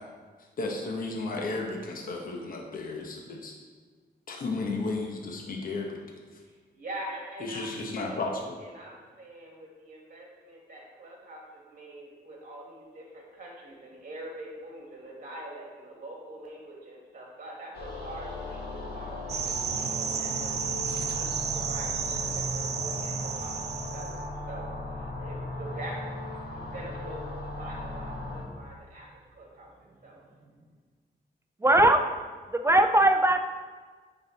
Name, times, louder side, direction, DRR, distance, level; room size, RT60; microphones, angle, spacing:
voice 1, 0.6-3.5 4.3-6.0 7.4-8.4, left 3 dB, 55° left, 0 dB, 0.9 m, -33 dB
voice 2, 6.4-20.5 20.9-26.0 26.2-30.6, right 1 dB, 50° right, -2 dB, 2.0 m, -44 dB
sound 1, 17.7-28.4, left 2 dB, 75° left, 1.8 m, -37 dB
sound 2, 19.3-24.2, right 6 dB, 65° right, 0.5 m, -32 dB
voice 3, 31.6-32.0 32.5-33.5, right 1 dB, 15° right, 6 dB, 0.3 m, -20 dB
9.5 x 4.0 x 3.9 m, 1.5 s
wide cardioid pair, 150°, 18 cm